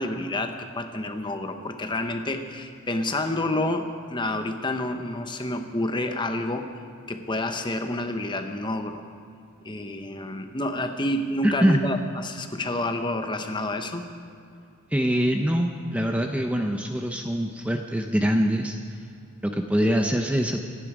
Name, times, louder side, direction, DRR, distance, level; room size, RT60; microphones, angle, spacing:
voice 1, 0.0-6.7 7.1-9.0 9.6-14.1, left 1 dB, 20° left, 6 dB, 0.9 m, -29 dB
voice 2, 11.4-11.9 14.9-18.8 19.4-20.6, equal, 5° right, 3 dB, 0.6 m, -24 dB
25.5 x 10.5 x 4.9 m, 2.4 s
head